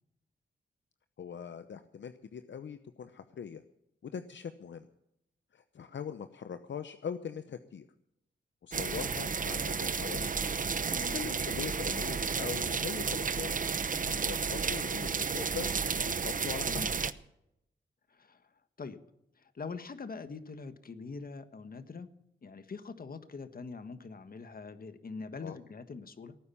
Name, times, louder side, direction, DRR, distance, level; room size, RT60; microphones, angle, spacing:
voice 1, 1.2-3.6 4.0-4.9 5.5-7.9 8.6-10.4 11.1-13.6 13.9-15.7 16.0-16.8 25.4-25.6, left 7 dB, 70° left, 10 dB, 0.8 m, -41 dB
sound 1, 8.7-17.1, right 5 dB, 45° right, 0.8 m, -32 dB
voice 2, 18.1-18.5 18.8-19.0 19.4-22.1 22.4-26.4, left 4 dB, 50° left, 10 dB, 1.4 m, -43 dB
18.0 x 9.6 x 7.1 m, 0.81 s
cardioid pair, 80°, 20 cm